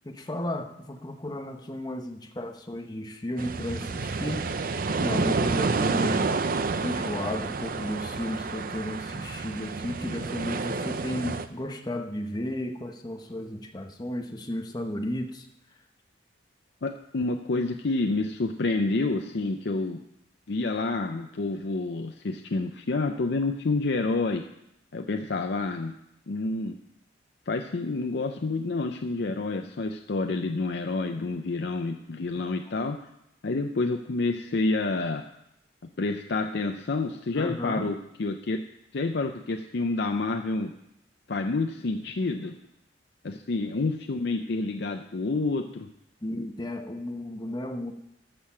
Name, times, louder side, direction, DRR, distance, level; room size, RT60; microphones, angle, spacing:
voice 1, 0.0-4.5 4.9-6.3 6.8-15.5 37.3-37.9 46.2-47.9, left 1 dB, 20° left, 5 dB, 0.9 m, -34 dB
sound 1, 3.4-11.5, right 4 dB, 50° right, 0.6 m, -29 dB
voice 2, 16.8-20.0 20.5-24.4 24.9-26.0 26.3-26.8 27.5-33.0 33.4-35.2 36.0-38.6 38.9-40.7 41.3-42.5 43.2-45.9, left 3 dB, 65° left, 5 dB, 0.6 m, -28 dB
13.5 x 6.6 x 5.7 m, 0.81 s
head